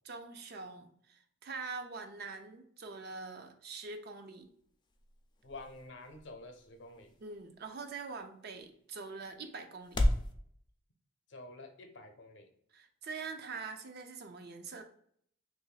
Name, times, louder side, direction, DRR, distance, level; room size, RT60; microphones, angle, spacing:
voice 1, 0.0-4.5 7.2-10.0 12.7-14.8, right 4 dB, 55° right, 6 dB, 0.5 m, -44 dB
sound 1, 4.1-10.3, left 1 dB, 25° left, 0.4 m, -38 dB
voice 2, 5.4-7.2 11.3-12.5, left 2 dB, 70° left, 6 dB, 0.7 m, -49 dB
3.0 x 2.5 x 3.9 m, 0.65 s
head